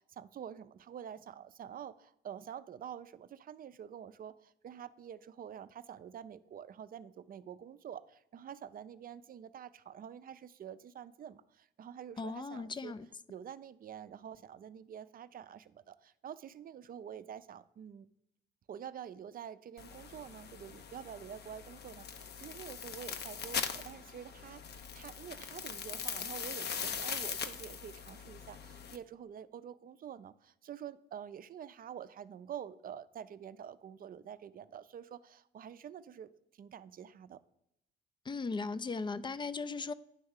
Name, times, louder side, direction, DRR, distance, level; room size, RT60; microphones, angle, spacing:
voice 1, 0.0-12.9 13.3-18.1 18.7-37.4, right 9 dB, 45° right, 0.5 m, -47 dB
voice 2, 12.2-13.1 38.3-39.9, left 4 dB, 25° left, 0.4 m, -37 dB
sound 1, 19.8-29.0, left 7 dB, 55° left, 0.7 m, -41 dB
9.6 x 3.5 x 6.4 m
cardioid pair, 90°, 20 cm